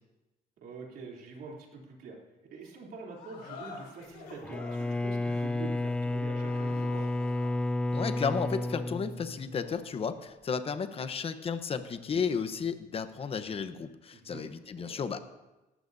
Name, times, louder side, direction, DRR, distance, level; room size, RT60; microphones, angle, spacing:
voice 1, 0.6-2.2 2.5-7.0 14.1-14.5 14.8-15.0, right 4 dB, 65° right, -1 dB, 3.2 m, -45 dB
sound 1, 3.1-9.9, left 4 dB, 75° left, 4.3 m, -50 dB
Bowed string instrument, 4.4-9.8, left 2 dB, 5° left, 0.3 m, -31 dB
voice 2, 7.9-15.2, left 6 dB, 35° left, 10 dB, 0.9 m, -33 dB
18.0 x 13.5 x 2.7 m, 1.0 s
cardioid pair, 110°, 17 cm